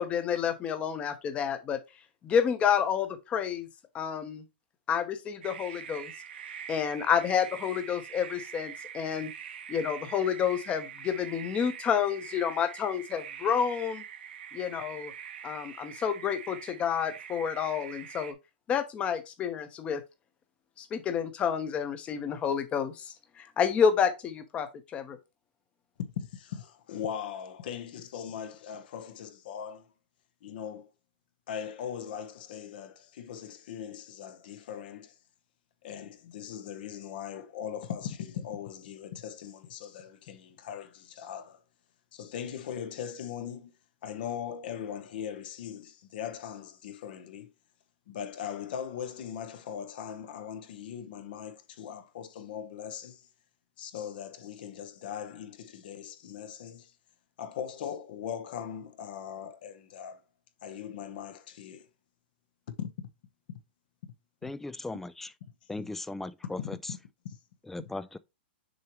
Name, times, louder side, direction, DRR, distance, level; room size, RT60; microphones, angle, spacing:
voice 1, 0.0-1.8 2.2-3.7 3.9-4.4 4.9-6.1 6.7-9.3 9.7-14.0 14.5-15.1 15.4-18.3 18.7-20.0 20.8-25.2, left 7 dB, 20° left, 0.9 m, -29 dB
sound 1, 5.4-18.3, right 8 dB, 75° right, 1.0 m, -44 dB
voice 2, 26.0-29.9 30.4-30.9 31.5-35.2 35.8-41.6 42.1-43.7 44.0-47.5 48.1-53.3 53.8-56.9 57.4-60.2 60.6-61.9 62.7-62.9 64.4-64.5 66.6-67.0 67.2-67.4, left 8 dB, 60° left, 1.1 m, -40 dB
voice 3, 64.4-65.3 65.7-66.8 67.7-68.2, left 2 dB, 5° left, 0.3 m, -38 dB
6.7 x 4.7 x 3.0 m
hypercardioid pair, 150°, 6 cm